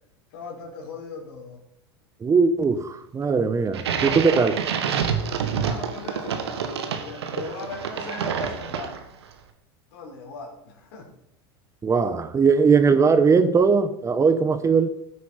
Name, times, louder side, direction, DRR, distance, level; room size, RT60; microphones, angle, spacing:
voice 1, 0.3-1.6 5.5-9.0 9.9-11.1, left 4 dB, 70° left, 1 dB, 4.0 m, -39 dB
voice 2, 2.2-4.6 11.8-14.9, right 5 dB, 20° right, 11 dB, 1.0 m, -20 dB
sound 1, 3.7-9.2, right 7 dB, 80° right, 1.5 m, -28 dB
15.0 x 8.2 x 4.2 m, 0.72 s
hypercardioid pair, 90°, 13 cm